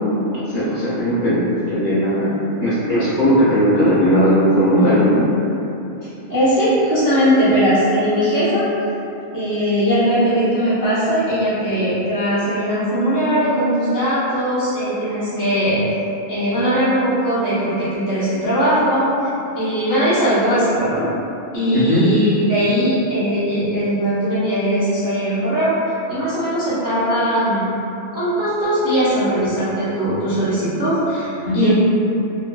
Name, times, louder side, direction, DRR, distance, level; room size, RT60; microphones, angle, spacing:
voice 1, 0.3-2.3 2.6-5.2 21.7-22.1 31.4-31.7, equal, 40° left, -13 dB, 0.7 m, -17 dB
voice 2, 6.0-8.7 9.3-15.8 16.3-19.1 19.5-21.1 21.5-25.8 26.1-27.7 28.1-31.7, equal, 25° right, -13 dB, 0.5 m, -19 dB
3.3 x 2.6 x 2.3 m, 2.9 s
omnidirectional pair, 1.3 m